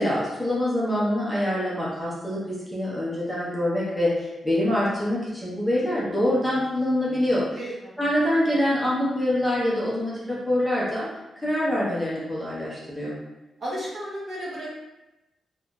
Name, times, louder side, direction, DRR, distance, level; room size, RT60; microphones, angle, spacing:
voice 1, 0.0-7.6 8.0-11.1 11.4-13.2, left 1 dB, ahead, -8 dB, 0.7 m, -25 dB
voice 2, 7.6-8.0 13.6-14.8, right 1 dB, 45° right, -6 dB, 0.8 m, -33 dB
2.8 x 2.5 x 2.2 m, 0.98 s
wide cardioid pair, 145°, 0 cm